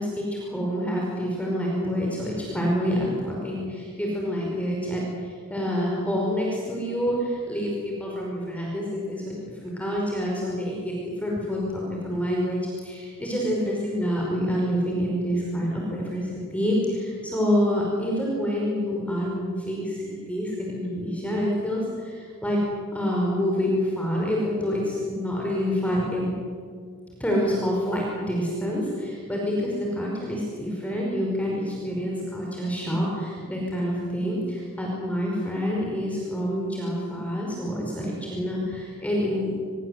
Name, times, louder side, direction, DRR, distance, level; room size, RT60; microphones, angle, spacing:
voice 1, 0.0-5.1 5.5-9.3 9.6-10.9 11.2-22.6 22.9-26.3 27.2-39.6, equal, 5° left, -3 dB, 5.1 m, -27 dB
27.5 x 21.0 x 8.3 m, 2.1 s
head